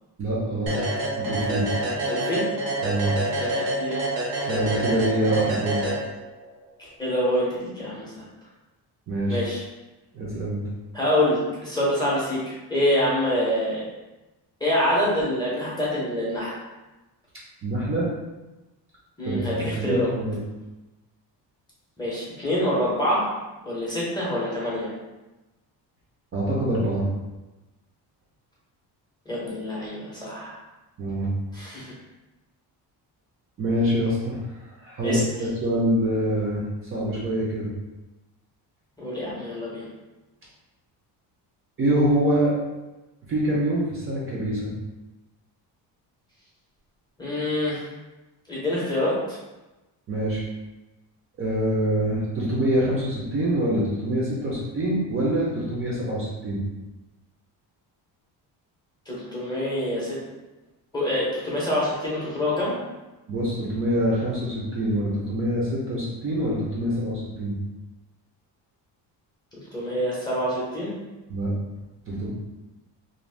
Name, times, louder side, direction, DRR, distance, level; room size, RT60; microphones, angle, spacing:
voice 1, 0.2-0.8 1.2-1.7 2.8-3.1 4.5-5.8 9.1-9.4 10.1-10.6 17.6-18.1 19.2-20.4 26.3-27.1 31.0-31.3 33.6-34.4 34.8-36.6 36.9-37.7 41.8-42.6 43.3-44.7 50.1-50.4 51.4-56.6 63.3-67.5 71.3-71.5 72.1-72.3, right 1 dB, 30° right, -5 dB, 0.5 m, -25 dB
sound 1, 0.7-6.5, right 1 dB, 60° right, 0.7 m, -27 dB
voice 2, 2.1-2.5 3.4-4.0 6.8-8.2 9.3-9.6 10.9-13.8 14.6-16.5 19.2-20.1 22.0-23.2 23.6-24.9 29.3-30.5 31.5-31.9 35.0-35.2 39.0-39.9 47.2-47.9 48.5-49.4 59.1-60.2 60.9-62.7 69.7-70.9, left 1 dB, 10° left, -7 dB, 0.7 m, -26 dB
2.6 x 2.1 x 3.2 m, 1.1 s
cardioid pair, 155°, 41 cm